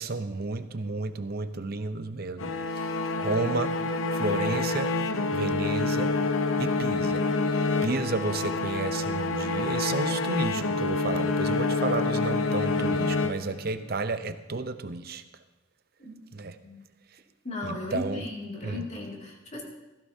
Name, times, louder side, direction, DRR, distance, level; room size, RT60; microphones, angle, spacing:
voice 1, 0.0-3.7 4.1-4.9 5.3-6.2 6.6-7.2 7.5-15.2 16.3-16.5 17.6-18.2 18.6-18.8, right 3 dB, 50° right, 10 dB, 0.7 m, -32 dB
sound 1, 2.4-13.9, left 3 dB, 85° left, 0.8 m, -27 dB
voice 2, 17.4-19.6, left 2 dB, 35° left, -1 dB, 2.5 m, -36 dB
16.0 x 15.0 x 2.8 m, 1.1 s
head